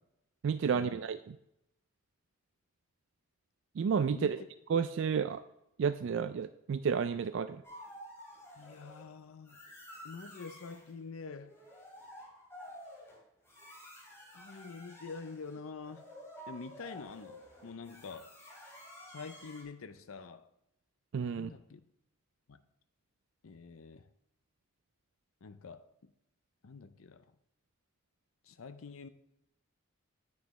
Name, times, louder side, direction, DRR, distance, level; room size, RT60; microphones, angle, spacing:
voice 1, 0.4-1.4 3.8-4.4 4.7-5.4 5.8-7.6 21.1-21.5, right 6 dB, 60° right, 0.3 m, -31 dB
voice 2, 4.1-4.5 8.6-9.7 10.0-11.6 14.3-16.1 16.5-18.5 19.1-20.5 21.3-21.8 22.5-22.6 23.4-24.1 25.4-26.1 26.6-27.2 28.4-29.1, left 4 dB, 75° left, 0.6 m, -46 dB
sound 1, 7.6-9.1 9.5-10.9 11.4-19.6, equal, 10° left, 2.8 m, -51 dB
9.7 x 9.1 x 3.1 m
head